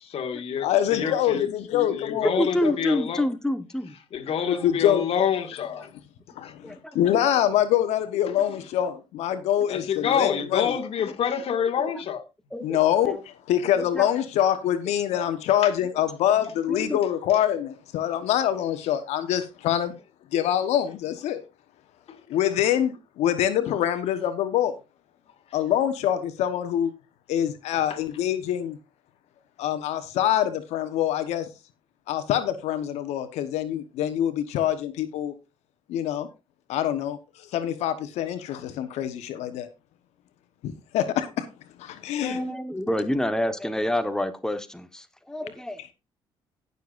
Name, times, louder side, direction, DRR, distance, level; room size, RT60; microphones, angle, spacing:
voice 1, 0.0-1.4 1.9-3.2 4.1-5.9 6.4-6.5 9.7-12.2 15.6-15.7 22.1-22.2, left 7 dB, 60° left, 1.9 m, -27 dB
voice 2, 0.6-2.8 4.5-5.1 6.4-10.8 12.6-19.9 20.3-21.4 22.3-24.7 25.5-26.9 27.3-28.8 29.6-31.5 32.1-35.3 35.9-36.3 36.7-39.7 40.6-41.5 41.8-42.5, left 11 dB, 80° left, 1.1 m, -25 dB
voice 3, 2.4-4.0 6.6-7.2 12.5-13.2 13.7-14.1 16.7-17.0 42.2-45.9, left 1 dB, 5° left, 1.3 m, -28 dB
18.0 x 6.7 x 2.5 m
supercardioid pair, 75°, 11 cm